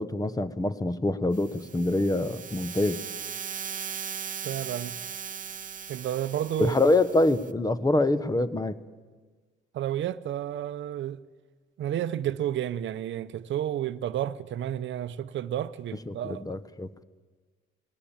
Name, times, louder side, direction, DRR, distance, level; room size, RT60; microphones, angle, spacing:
voice 1, 0.0-3.0 6.6-8.8 16.1-17.0, left 2 dB, 20° left, 1.1 m, -25 dB
sound 1, 1.3-7.5, right 7 dB, 40° right, 1.0 m, -38 dB
voice 2, 4.4-5.0 5.9-6.8 9.7-11.2 11.8-16.4, right 11 dB, 70° right, 0.8 m, -31 dB
20.5 x 17.5 x 8.9 m
cardioid pair, 90°, 20 cm